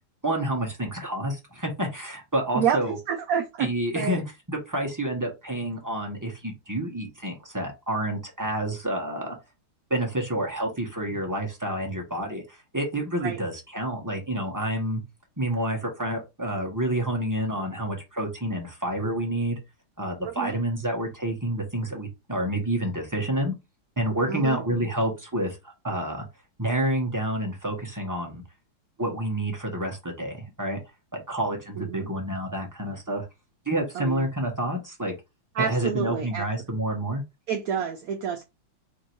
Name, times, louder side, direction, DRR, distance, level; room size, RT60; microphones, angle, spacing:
voice 1, 0.2-2.9 3.6-4.2 4.5-9.4 9.9-15.0 15.4-19.6 20.0-23.5 24.0-26.2 26.6-28.4 29.0-30.8 31.1-33.3 33.7-35.1 35.6-37.2, right 1 dB, 25° right, 0 dB, 0.4 m, -28 dB
voice 2, 3.1-3.7 3.9-4.2 13.2-13.4 20.2-20.6 24.3-24.6 31.8-32.1 33.9-34.3 35.5-36.5 37.5-38.4, right 8 dB, 70° right, 3 dB, 0.9 m, -28 dB
3.6 x 2.6 x 4.4 m, 0.24 s
omnidirectional pair, 2.0 m